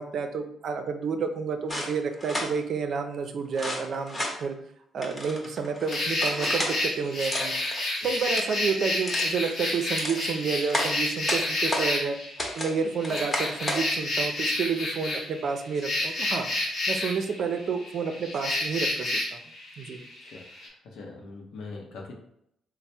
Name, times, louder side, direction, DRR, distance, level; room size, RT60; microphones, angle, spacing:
voice 1, 0.0-4.5 4.9-7.5 8.0-12.2 12.6-16.5 16.9-19.4 19.8-20.0, right 5 dB, 60° right, 7 dB, 0.4 m, -30 dB
sound 1, 1.7-2.5 3.5-4.4 5.0-6.8 7.2-7.8 8.2-8.5 9.0-9.3 9.8-10.2 10.7-11.9 12.4-12.7 13.0-13.8, left 1 dB, 15° left, 0.8 m, -32 dB
sound 2, 5.9-20.7, left 1 dB, 50° left, 0.9 m, -30 dB
voice 2, 20.9-22.1, left 3 dB, 80° left, -1 dB, 0.7 m, -41 dB
3.2 x 2.0 x 4.1 m, 0.74 s
cardioid pair, 90°, 0 cm